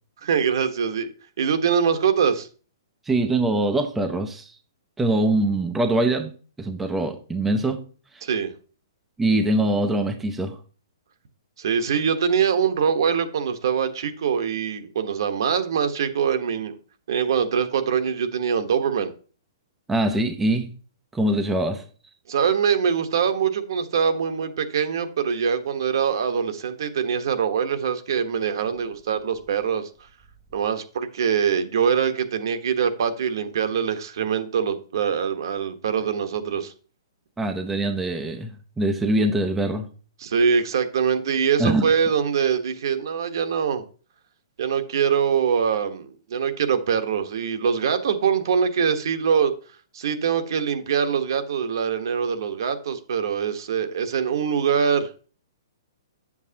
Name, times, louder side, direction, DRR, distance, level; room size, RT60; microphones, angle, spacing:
voice 1, 0.2-1.1 1.4-2.5 8.2-8.5 11.6-16.8 17.1-19.1 22.3-29.9 30.5-36.7 40.2-43.8 44.6-49.5 49.9-55.1, right 7 dB, 60° right, 1.1 m, -23 dB
voice 2, 3.1-4.6 5.0-7.8 8.1-8.2 9.2-10.6 19.9-20.7 21.1-21.8 37.4-38.5 38.8-39.9 41.6-41.9, right 1 dB, 5° right, 0.6 m, -23 dB
9.4 x 7.2 x 2.9 m
hypercardioid pair, 160°, 2 cm